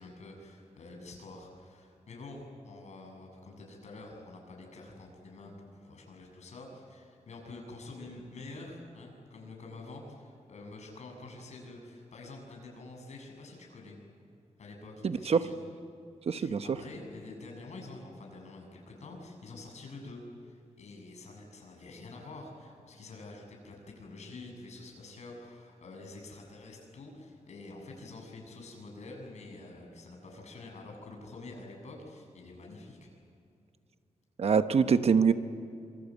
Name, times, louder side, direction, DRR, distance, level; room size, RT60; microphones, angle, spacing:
voice 1, 0.0-14.0 14.6-15.6 16.3-33.1, left 2 dB, 70° left, 1 dB, 7.1 m, -47 dB
voice 2, 15.0-15.4 16.3-16.6 34.4-35.3, right 6 dB, 55° right, 10 dB, 1.1 m, -24 dB
26.5 x 25.0 x 8.4 m, 2.6 s
wide cardioid pair, 155°, 12 cm